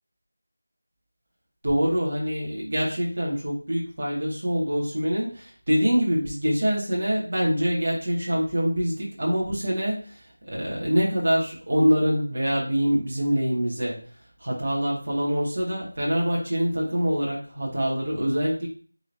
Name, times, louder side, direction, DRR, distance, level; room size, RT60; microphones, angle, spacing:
voice 1, 1.6-14.1 14.4-18.7, equal, 30° right, -5 dB, 2.1 m, -25 dB
9.0 x 4.1 x 2.8 m, 0.41 s
figure-of-eight pair, 180°, 0 cm